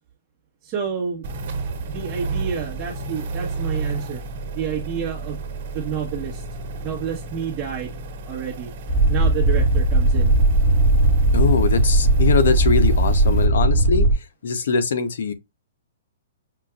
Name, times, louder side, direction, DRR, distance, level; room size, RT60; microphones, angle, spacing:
voice 1, 0.6-1.3 1.9-4.2 4.5-5.4 5.7-6.4 6.8-7.9 8.3-8.7 9.1-10.3, right 7 dB, 25° right, 1.1 m, -29 dB
sound 1, 1.2-13.5, right 3 dB, 45° right, 1.5 m, -33 dB
sound 2, 8.9-14.1, right 2 dB, 5° left, 1.2 m, -17 dB
voice 2, 11.3-14.1 14.4-15.3, left 5 dB, 70° left, 0.8 m, -22 dB
5.7 x 2.5 x 2.4 m
hypercardioid pair, 165°, 0 cm